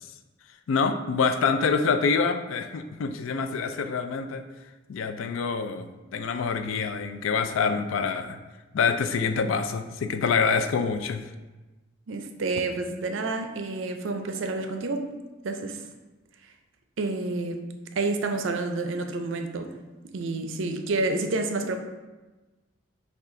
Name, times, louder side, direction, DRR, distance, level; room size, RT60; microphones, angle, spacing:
voice 1, 0.7-4.4 4.9-8.4 8.7-11.2, left 5 dB, 90° left, 9 dB, 0.4 m, -26 dB
voice 2, 12.1-15.1 15.4-15.8 17.0-17.6 18.0-19.7 20.1-21.8, right 3 dB, 75° right, 6 dB, 0.5 m, -29 dB
5.5 x 2.4 x 3.7 m, 1.2 s
head